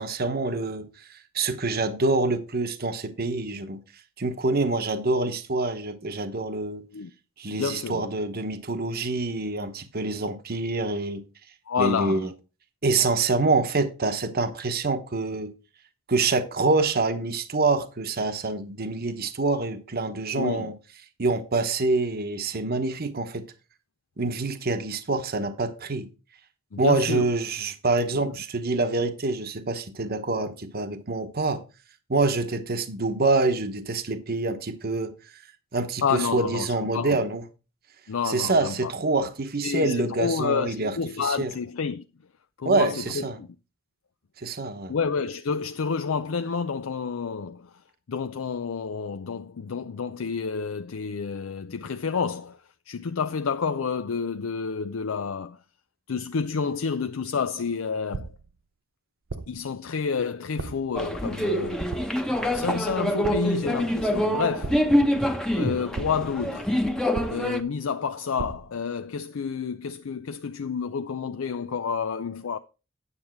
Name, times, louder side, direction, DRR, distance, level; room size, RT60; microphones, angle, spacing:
voice 1, 0.0-3.8 4.2-6.8 7.4-11.2 11.8-12.3 12.8-15.5 16.1-20.7 21.2-23.5 24.2-26.1 26.8-31.6 32.1-35.1 35.7-37.4 38.2-41.5 42.6-43.4 44.4-44.9, right 3 dB, 50° right, 1.0 m, -26 dB
voice 2, 7.5-8.0 11.7-12.3 20.4-20.7 26.7-27.3 28.1-28.4 36.0-37.2 38.1-38.9 39.6-42.0 42.6-43.5 44.9-47.8 48.1-55.6 56.1-58.4 59.5-61.9 62.4-64.8 65.5-66.7 67.3-72.6, left 5 dB, 85° left, 0.5 m, -29 dB
sound 1, 58.1-58.6 59.3-59.7 60.6-61.0 61.9-62.4 63.2-63.7 64.6-65.2 65.9-66.4 67.1-67.7 68.4-68.8, right 4 dB, 70° right, 0.6 m, -37 dB
sound 2, 60.9-67.6, equal, 5° left, 0.8 m, -25 dB
9.8 x 7.2 x 4.4 m
head